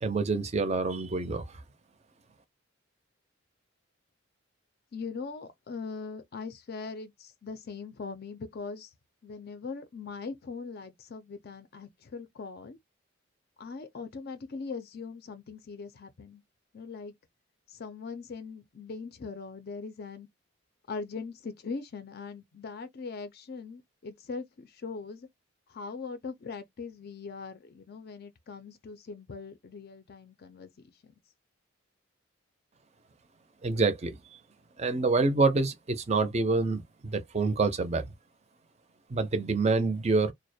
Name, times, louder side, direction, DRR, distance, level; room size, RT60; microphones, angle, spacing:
voice 1, 0.0-1.5 33.6-34.2 34.8-38.1 39.1-40.3, right 3 dB, 30° right, 0.5 m, -27 dB
voice 2, 4.9-8.9 9.2-12.8 13.6-16.4 16.7-17.1 17.7-20.3 20.9-25.3 25.7-31.1, left 4 dB, 50° left, 0.4 m, -41 dB
2.3 x 2.1 x 2.6 m
head